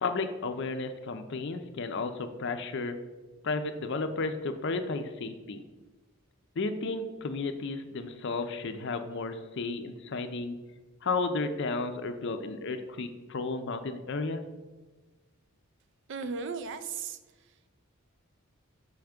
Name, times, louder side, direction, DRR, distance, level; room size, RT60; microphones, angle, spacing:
voice 1, 0.0-3.0 3.4-5.6 6.6-10.6 11.0-14.4, left 3 dB, 55° left, 8 dB, 0.5 m, -33 dB
voice 2, 16.1-17.7, right 5 dB, 55° right, 11 dB, 0.4 m, -37 dB
6.3 x 3.5 x 5.0 m, 1.2 s
head